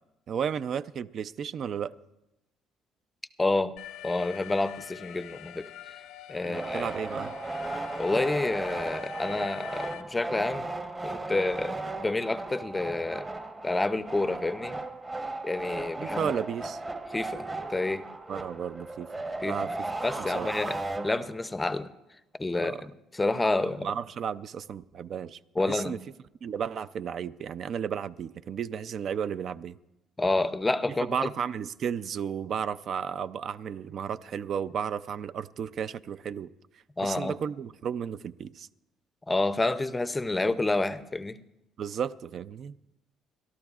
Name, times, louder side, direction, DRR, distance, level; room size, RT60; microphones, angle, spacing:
voice 1, 0.3-1.9 6.4-7.3 16.0-16.8 18.3-19.1 19.4-19.7 20.2-20.5 22.6-22.9 23.6-26.0 26.4-29.8 30.9-36.5 37.0-38.7 41.8-42.8, right 7 dB, 50° right, 14 dB, 0.4 m, -33 dB
voice 2, 3.4-3.7 4.0-5.7 6.3-6.9 8.0-10.7 11.0-13.3 13.6-14.8 15.4-16.3 17.1-18.0 19.4-19.6 20.0-20.8 21.0-21.9 22.4-23.9 25.6-26.0 30.2-31.3 37.0-37.4 39.3-41.4, left 2 dB, 15° left, 12 dB, 0.5 m, -29 dB
Alarm, 3.8-10.0, left 12 dB, 85° left, 0.6 m, -45 dB
sound 1, 6.5-21.5, right 2 dB, 20° right, 1.1 m, -36 dB
30.0 x 12.5 x 2.4 m, 0.92 s
cardioid pair, 120°, 0 cm